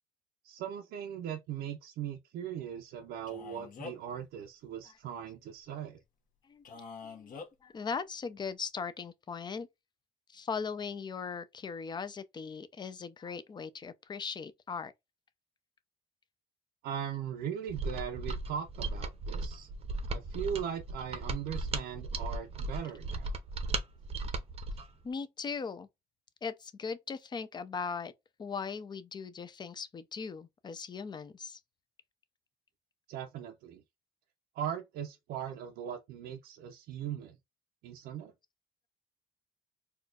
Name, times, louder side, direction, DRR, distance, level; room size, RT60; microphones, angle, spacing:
voice 1, 0.4-6.0 16.8-19.7 20.1-23.4 33.1-33.8 34.5-37.4 37.8-38.3, right 9 dB, 75° right, 0.6 m, -39 dB
Male speech man speaking, 3.3-4.2 6.6-7.5, left 5 dB, 55° left, 1.0 m, -45 dB
voice 2, 7.0-7.4 7.6-9.7 10.3-14.9 25.0-25.9 26.4-28.1 28.4-31.6, left 5 dB, 25° left, 0.5 m, -39 dB
Mechanisms, 17.7-24.9, right 2 dB, 35° right, 0.7 m, -36 dB
4.2 x 2.3 x 2.4 m
cardioid pair, 110°, 17 cm